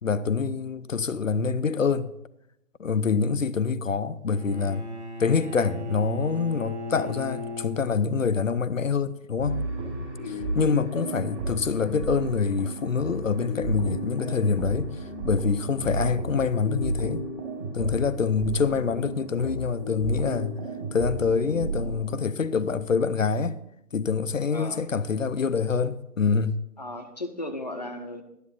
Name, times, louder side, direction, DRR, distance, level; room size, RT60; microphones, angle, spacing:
voice 1, 0.0-2.1 2.8-4.9 5.2-9.6 10.3-17.2 17.7-20.5 20.9-23.6 23.9-26.6, left 5 dB, 60° left, 0.6 m, -26 dB
Bowed string instrument, 4.3-8.4, left 1 dB, 50° right, 1.2 m, -37 dB
sound 1, 9.4-22.2, right 2 dB, 20° right, 1.7 m, -33 dB
voice 2, 10.2-10.5 24.5-24.8 26.8-28.2, left 2 dB, 30° left, 0.7 m, -36 dB
11.5 x 9.8 x 4.0 m
figure-of-eight pair, 150°, 45 cm